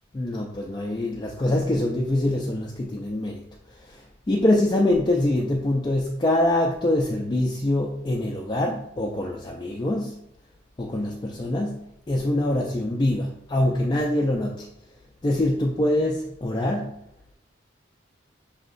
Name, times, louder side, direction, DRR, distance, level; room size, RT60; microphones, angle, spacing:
voice 1, 0.1-3.4 3.8-10.1 10.8-14.7 15.2-16.9, left 1 dB, 25° left, -1 dB, 0.3 m, -24 dB
6.2 x 2.8 x 2.5 m, 0.78 s
head